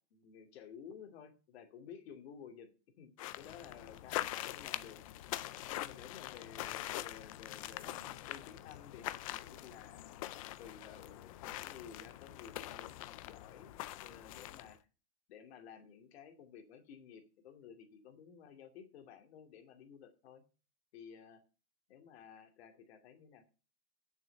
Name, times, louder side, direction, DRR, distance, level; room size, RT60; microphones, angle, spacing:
voice 1, 0.0-2.7 3.0-5.0 5.2-13.7 14.0-14.9 15.3-20.4 20.9-21.4 21.9-23.5, left 7 dB, 65° left, 5 dB, 2.5 m, -54 dB
sound 1, 3.2-14.8, left 15 dB, 30° left, 0.4 m, -44 dB
8.8 x 7.2 x 6.6 m, 0.35 s
supercardioid pair, 175°, 34 cm